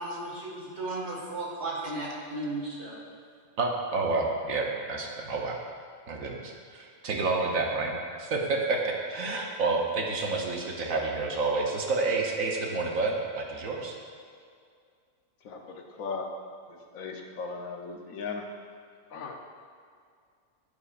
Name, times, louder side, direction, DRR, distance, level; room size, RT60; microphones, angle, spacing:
voice 1, 0.0-2.9, right 2 dB, 50° right, -4 dB, 2.0 m, -35 dB
voice 2, 3.6-5.6 6.1-14.0, right 3 dB, 75° right, 0 dB, 1.3 m, -29 dB
voice 3, 15.4-16.3 16.7-18.5 19.1-19.4, left 4 dB, 75° left, 2 dB, 1.2 m, -37 dB
10.5 x 8.4 x 2.4 m, 2.2 s
omnidirectional pair, 1.5 m